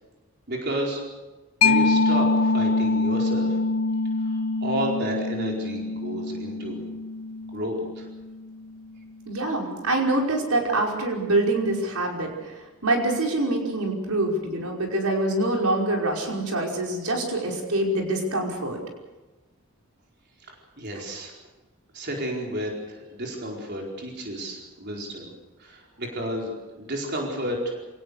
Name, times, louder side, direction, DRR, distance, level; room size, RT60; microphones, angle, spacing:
voice 1, 0.5-1.0 1.6-3.6 4.2-6.8 7.5-8.1 20.5-21.3 21.9-25.3 25.6-27.8, equal, 50° right, -1 dB, 4.7 m, -31 dB
Mallet percussion, 1.6-8.9, left 3 dB, 85° left, 1.1 m, -25 dB
voice 2, 9.3-18.8 21.0-21.1, right 2 dB, 85° right, 0 dB, 5.3 m, -25 dB
27.5 x 18.0 x 6.6 m, 1.1 s
head